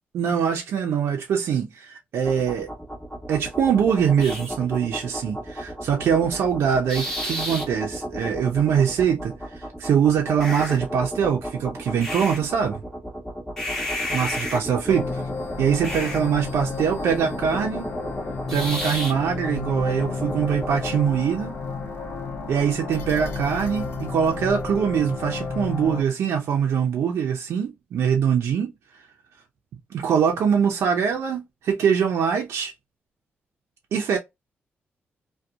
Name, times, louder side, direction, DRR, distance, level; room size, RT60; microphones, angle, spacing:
voice 1, 0.1-2.7 3.3-12.8 14.1-15.2 15.6-17.9 18.5-21.6 22.5-28.7 29.9-32.7 33.9-34.2, right 7 dB, 85° right, 0.5 m, -23 dB
sound 1, 2.2-21.0, equal, 10° left, 1.1 m, -32 dB
sound 2, 14.9-26.0, left 4 dB, 65° left, 0.7 m, -32 dB
2.7 x 2.2 x 2.4 m
cardioid pair, 95°, 4 cm